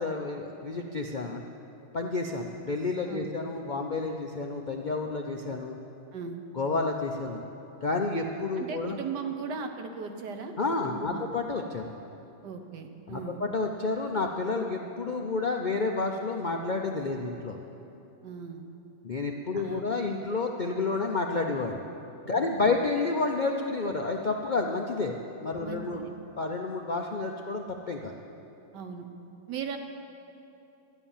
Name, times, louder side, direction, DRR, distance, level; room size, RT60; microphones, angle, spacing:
voice 1, 0.0-1.4 1.9-5.8 6.5-7.4 7.8-9.0 10.6-11.9 13.1-17.6 19.0-21.8 22.3-26.0 26.4-28.1, left 3 dB, 60° left, 2 dB, 0.4 m, -30 dB
voice 2, 6.1-6.4 8.6-10.5 10.8-11.3 12.4-13.4 18.2-18.7 19.5-19.8 22.3-22.8 25.6-26.1 28.7-29.1 29.5-29.8, right 5 dB, 90° right, 6 dB, 1.6 m, -38 dB
13.0 x 10.0 x 7.2 m, 2.8 s
omnidirectional pair, 1.8 m